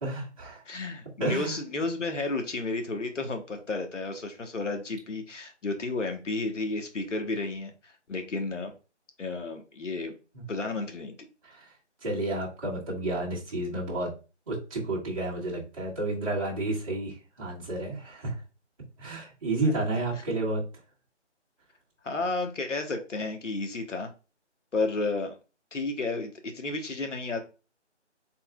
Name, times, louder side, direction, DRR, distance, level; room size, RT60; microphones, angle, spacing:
voice 1, 0.0-0.6 1.2-1.6 10.3-10.4 11.4-11.7 12.0-14.1 14.5-18.4 19.0-20.6, right 2 dB, 30° right, -7 dB, 1.5 m, -31 dB
voice 2, 0.6-8.7 9.2-10.1 10.5-11.1 22.0-24.1 24.7-25.3 25.7-27.4, left 3 dB, 80° left, 5 dB, 1.2 m, -32 dB
4.5 x 3.7 x 2.3 m, 0.32 s
figure-of-eight pair, 165°, 36 cm